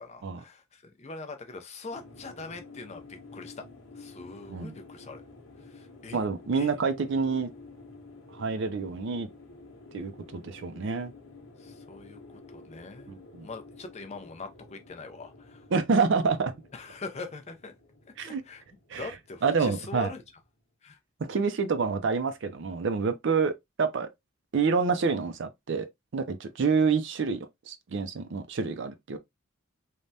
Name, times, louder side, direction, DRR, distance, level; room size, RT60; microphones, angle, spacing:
voice 1, 0.0-3.6 3.9-5.2 5.6-6.2 6.5-6.7 11.6-13.1 13.4-15.7 16.7-17.7 18.2-18.6 19.0-20.2 20.8-21.0, left 3 dB, 30° left, 0.5 m, -42 dB
sound 1, 1.9-20.3, left 3 dB, 70° left, 0.9 m, -51 dB
voice 2, 6.1-7.5 8.3-9.3 9.9-11.1 13.1-13.5 15.7-16.5 18.2-18.4 18.9-19.1 19.4-20.1 21.2-24.1 24.5-25.9 26.1-29.2, right 5 dB, 55° right, 0.4 m, -27 dB
3.3 x 2.2 x 2.6 m
head